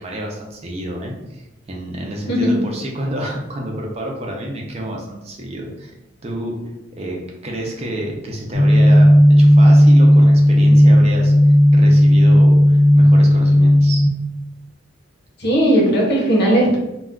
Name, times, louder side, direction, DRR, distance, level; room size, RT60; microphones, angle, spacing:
voice 1, 0.0-5.9 6.2-6.6 7.0-11.3 11.7-14.0, right 1 dB, 30° right, 0 dB, 0.5 m, -29 dB
voice 2, 2.3-2.6 15.4-16.8, equal, 55° left, -2 dB, 0.8 m, -16 dB
sound 1, 8.5-14.1, equal, 25° left, 0.4 m, -11 dB
2.3 x 2.2 x 3.5 m, 0.93 s
head